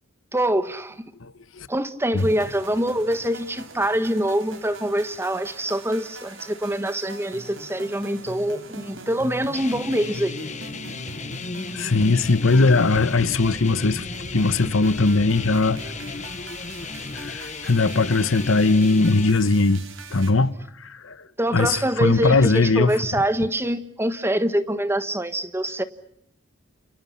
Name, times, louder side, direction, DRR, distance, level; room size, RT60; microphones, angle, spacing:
voice 1, 0.3-1.1 1.7-10.4 21.4-25.8, right 1 dB, 10° right, 1.3 m, -25 dB
sound 1, 2.2-20.3, right 2 dB, 75° right, 3.8 m, -40 dB
sound 2, 9.5-19.3, left 4 dB, 35° left, 1.2 m, -35 dB
voice 2, 11.7-14.0 14.3-15.8 17.1-19.8 20.1-20.5 20.8-21.2 21.5-23.0, left 3 dB, 90° left, 1.2 m, -19 dB
29.0 x 29.0 x 5.8 m
head